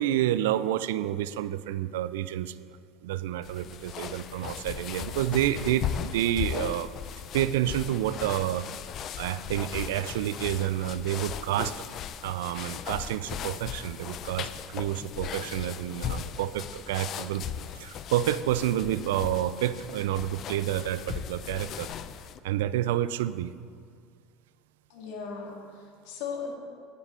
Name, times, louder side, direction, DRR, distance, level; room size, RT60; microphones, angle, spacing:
voice 1, 0.0-2.6 3.0-6.9 7.3-8.7 9.2-11.8 12.2-21.9 22.4-23.5, right 12 dB, 85° right, 15 dB, 0.3 m, -29 dB
sound 1, 3.4-22.4, left 9 dB, 50° left, 0.5 m, -37 dB
voice 2, 24.9-26.5, left 5 dB, 75° left, 0 dB, 1.9 m, -37 dB
11.0 x 9.8 x 3.7 m, 2.2 s
supercardioid pair, 90°, 0 cm